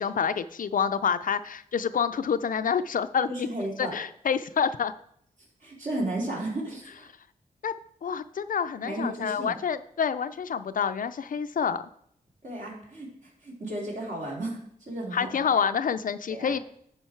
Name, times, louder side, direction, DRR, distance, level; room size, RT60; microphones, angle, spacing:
voice 1, 0.0-3.5 3.8-4.9 7.6-7.7 8.0-11.8 15.1-16.6, left 7 dB, 65° left, 12 dB, 0.5 m, -27 dB
voice 2, 3.3-3.9 5.6-7.1 8.8-9.6 12.4-14.6 14.9-15.4 16.3-16.6, right 1 dB, 55° right, -4 dB, 3.5 m, -34 dB
10.0 x 5.2 x 4.5 m, 0.68 s
cardioid pair, 70°, 15 cm